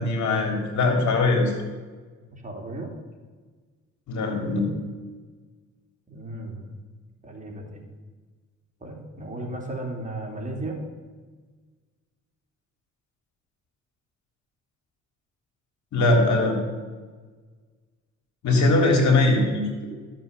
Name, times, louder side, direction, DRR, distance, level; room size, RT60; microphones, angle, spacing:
voice 1, 0.0-1.5 4.1-4.7 15.9-16.6 18.4-19.9, left 2 dB, 70° left, 3 dB, 3.5 m, -21 dB
voice 2, 2.3-2.9 6.1-6.7 7.2-7.8 8.8-10.8, right 2 dB, 25° right, 0 dB, 3.1 m, -35 dB
13.5 x 7.6 x 7.0 m, 1.4 s
cardioid pair, 90°, 30 cm